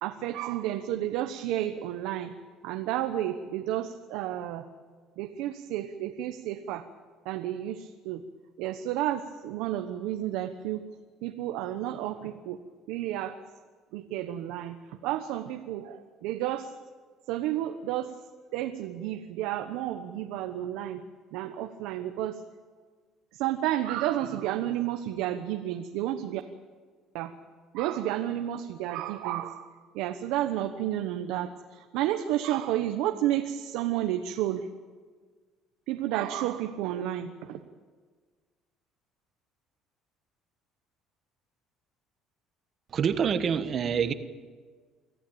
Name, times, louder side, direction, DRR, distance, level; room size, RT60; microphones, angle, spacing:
voice 1, 0.0-2.3 2.6-4.7 5.2-6.9 7.2-8.2 8.6-10.8 11.2-12.6 12.9-13.5 13.9-16.7 17.3-18.1 18.5-21.0 21.3-22.4 23.3-26.4 27.1-27.3 27.7-34.7 35.9-37.6, right 12 dB, 85° right, 6 dB, 1.1 m, -31 dB
voice 2, 42.9-44.1, right 7 dB, 35° right, 10 dB, 1.2 m, -26 dB
24.5 x 14.5 x 8.7 m, 1.5 s
cardioid pair, 160°, 0 cm